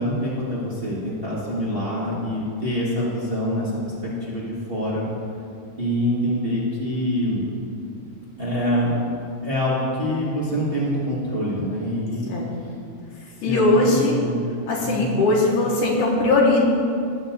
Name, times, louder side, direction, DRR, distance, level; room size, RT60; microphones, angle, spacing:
voice 1, 0.0-5.1 5.8-7.4 8.4-9.0 9.4-12.3 13.4-14.4 14.8-15.2, equal, 25° right, -8 dB, 1.5 m, -25 dB
voice 2, 13.4-14.2 14.7-16.6, left 2 dB, 85° left, -3 dB, 3.1 m, -19 dB
16.5 x 8.7 x 2.6 m, 2.4 s
omnidirectional pair, 3.6 m